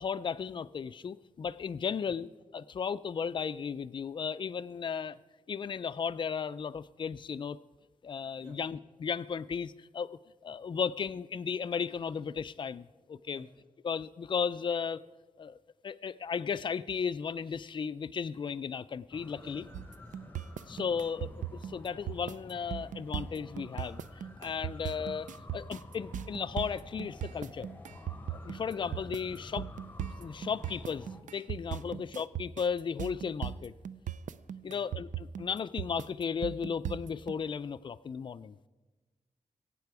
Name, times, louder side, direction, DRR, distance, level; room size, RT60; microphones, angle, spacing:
voice 1, 0.0-2.3 2.5-5.2 5.5-7.6 8.0-10.1 10.4-13.5 13.8-15.0 15.4-15.6 15.8-19.6 20.7-24.0 24.4-27.7 28.3-29.6 30.2-31.1 31.3-33.7 34.6-38.6, left 6 dB, 40° left, 14 dB, 0.3 m, -35 dB
sound 1, 19.1-31.2, left 2 dB, 15° left, 0.9 m, -50 dB
voice 2, 19.4-20.3 29.3-29.4 31.8-32.0 34.6-34.9, right 1 dB, 30° right, 0 dB, 3.8 m, -55 dB
sound 2, 19.7-37.3, right 10 dB, 80° right, 0.4 m, -38 dB
22.0 x 8.8 x 4.8 m, 1.3 s
wide cardioid pair, 175°, 13 cm